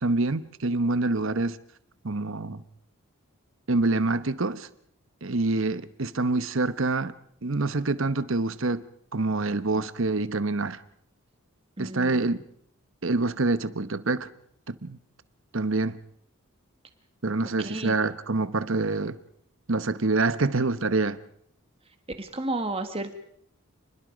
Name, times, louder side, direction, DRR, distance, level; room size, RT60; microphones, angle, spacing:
voice 1, 0.0-1.6 2.0-2.6 3.7-4.7 5.2-7.1 7.4-8.8 9.1-10.8 11.8-12.4 13.0-14.3 14.7-15.0 15.5-16.0 17.2-19.2 19.7-21.2, right 3 dB, 60° right, 1.1 m, -26 dB
voice 2, 11.8-12.3 17.6-17.9 22.2-23.2, right 2 dB, 25° right, 1.6 m, -32 dB
29.0 x 21.0 x 5.2 m
head